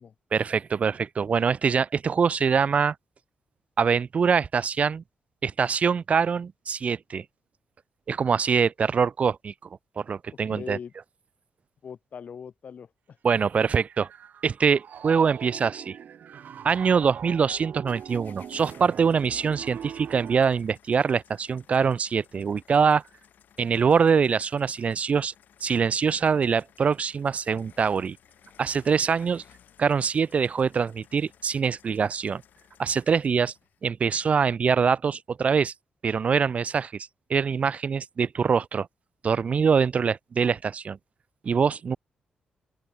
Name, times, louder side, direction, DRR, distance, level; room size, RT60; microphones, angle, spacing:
voice 1, 0.3-2.9 3.8-5.0 5.4-7.2 8.1-9.5 10.0-10.8 13.2-14.1 14.4-16.0 16.6-23.0 23.6-25.3 25.6-28.2 28.6-29.4 29.8-32.4 32.8-33.5 33.8-35.7 36.0-38.9 39.2-41.0 41.4-42.0, right 6 dB, 45° right, 0.5 m, -24 dB
voice 2, 10.3-10.9 11.8-13.4, left 7 dB, 55° left, 1.7 m, -41 dB
Piano, 13.4-20.4, right 8 dB, 65° right, 1.1 m, -42 dB
sound 1, 17.9-33.8, left 9 dB, 75° left, 4.6 m, -58 dB
open air
cardioid pair, 90°, 3 cm